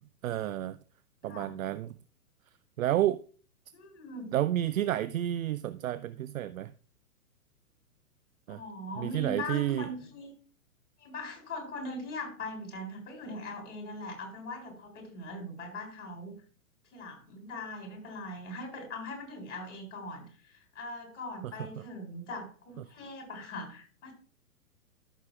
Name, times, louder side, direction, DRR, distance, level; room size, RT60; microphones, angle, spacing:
voice 1, 0.2-0.8 1.2-1.9 2.8-3.2 4.3-6.7 8.5-8.6 9.0-9.9 21.4-21.8 22.8-22.9, right 13 dB, 65° right, 0.5 m, -30 dB
voice 2, 3.7-4.3 8.5-10.3 11.0-16.4 16.9-24.1, left 2 dB, 55° left, 3.8 m, -41 dB
13.5 x 6.4 x 2.3 m
figure-of-eight pair, 120°, 44 cm